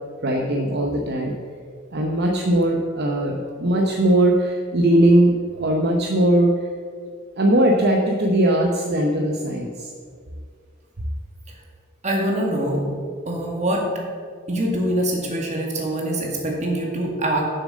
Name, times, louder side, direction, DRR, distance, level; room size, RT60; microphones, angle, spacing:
voice 1, 0.2-1.4 1.9-6.5 7.4-9.9, right 1 dB, 55° right, 1 dB, 0.8 m, -19 dB
voice 2, 12.0-12.8 13.2-13.9 14.5-17.4, right 1 dB, 35° right, -1 dB, 1.8 m, -24 dB
7.4 x 6.7 x 6.4 m, 2.1 s
head